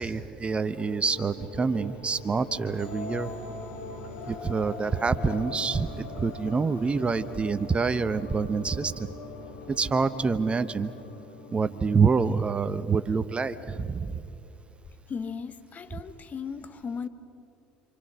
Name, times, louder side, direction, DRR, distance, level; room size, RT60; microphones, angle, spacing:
voice 1, 0.0-3.3 4.3-9.1 9.7-10.9 11.5-14.2, right 5 dB, 25° right, 13 dB, 1.0 m, -26 dB
sound 1, 0.6-13.5, left 3 dB, 65° left, 3.4 m, -42 dB
voice 2, 15.1-17.1, left 6 dB, 35° left, 11 dB, 1.5 m, -36 dB
28.5 x 27.0 x 6.4 m, 2.7 s
hypercardioid pair, 65°, 5 cm